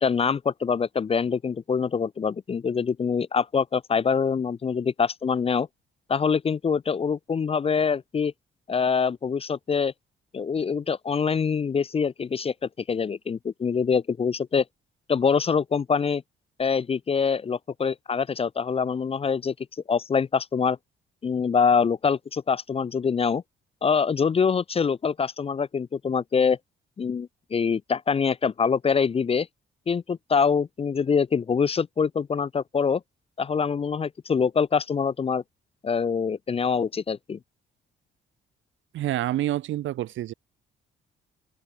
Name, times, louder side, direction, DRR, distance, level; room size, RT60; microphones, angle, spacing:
voice 1, 0.0-5.7 6.1-8.3 8.7-9.9 10.3-12.5 12.9-14.6 15.1-16.2 16.6-19.5 19.9-20.8 21.2-23.4 23.8-26.6 27.0-29.5 29.9-33.0 33.4-35.4 35.8-37.4, left 6 dB, 30° left, 0.5 m, -24 dB
voice 2, 38.9-40.3, right 14 dB, 75° right, 1.1 m, -27 dB
open air
cardioid pair, 90°, 20 cm